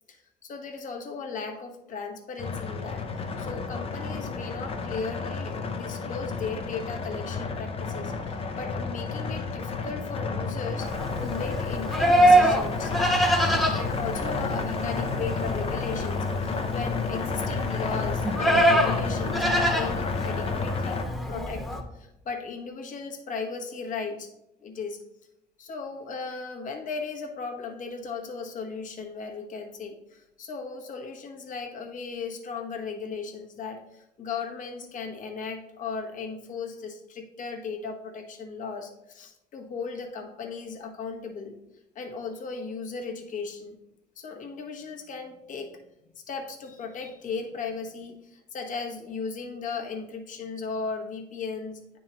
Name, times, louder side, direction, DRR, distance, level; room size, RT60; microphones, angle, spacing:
voice 1, 0.1-12.9 13.8-21.0 21.3-21.7 21.9-24.3 24.6-25.0 25.6-41.6 41.9-43.8 44.2-45.7 46.1-52.0, left 5 dB, 50° left, 2 dB, 1.1 m, -36 dB
sound 1, 2.4-21.0, left 4 dB, 35° left, 0.7 m, -31 dB
Livestock farm animals working animals, 10.8-21.8, right 1 dB, ahead, 1.1 m, -25 dB
9.3 x 3.7 x 2.9 m, 0.88 s
cardioid pair, 110°, 17 cm